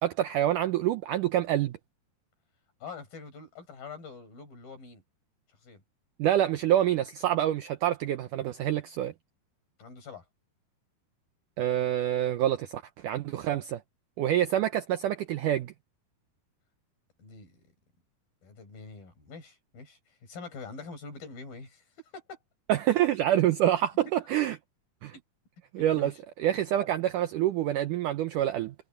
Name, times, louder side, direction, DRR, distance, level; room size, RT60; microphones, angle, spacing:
voice 1, 0.0-1.8 6.2-9.1 11.6-13.8 14.2-15.7 22.7-24.6 25.0-25.1 25.7-26.1 26.4-28.7, right 12 dB, 85° right, 1.9 m, -26 dB
voice 2, 2.8-5.0 5.6-5.8 9.8-10.3 17.2-17.6 18.4-22.4 25.1-25.2 25.8-26.2, left 4 dB, 60° left, 7.5 m, -45 dB
omnidirectional pair, 4.6 m